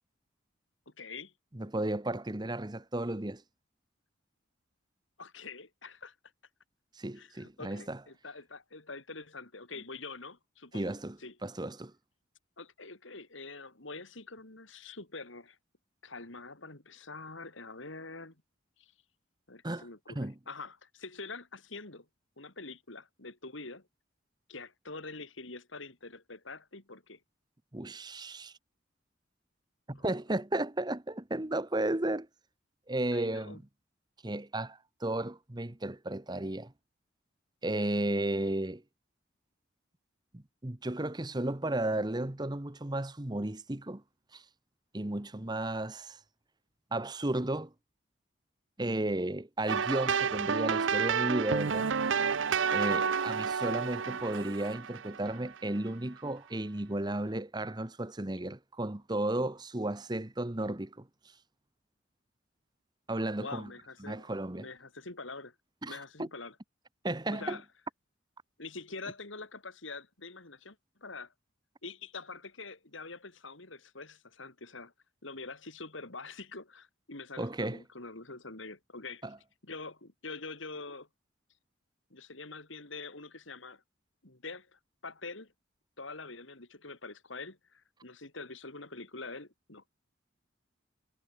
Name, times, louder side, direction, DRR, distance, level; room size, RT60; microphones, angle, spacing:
voice 1, 0.9-1.3 5.2-6.2 7.2-11.4 12.6-15.6 16.0-18.4 18.8-18.9 19.5-22.1 22.4-23.9 24.5-27.2 29.9-30.0 33.1-33.6 52.7-53.2 63.4-65.6 65.9-66.6 67.3-67.6 68.6-71.3 71.8-74.9 75.2-79.2 79.6-81.1 82.1-83.8 84.2-85.5 86.0-89.9, left 3 dB, 75° left, 3.6 m, -45 dB
voice 2, 1.5-3.4 7.0-8.0 10.7-11.9 19.6-19.9 20.1-20.3 27.7-28.5 29.9-32.3 32.9-33.6 34.2-36.7 37.6-38.8 40.3-44.0 44.3-44.4 44.9-46.2 46.9-47.7 48.8-51.9 52.7-61.1 63.1-63.7 64.0-64.7 65.8-66.3 67.0-67.6 77.4-77.8 79.2-79.4, right 1 dB, 20° right, 1.0 m, -34 dB
sound 1, 49.7-55.6, right 6 dB, 70° right, 0.7 m, -30 dB
head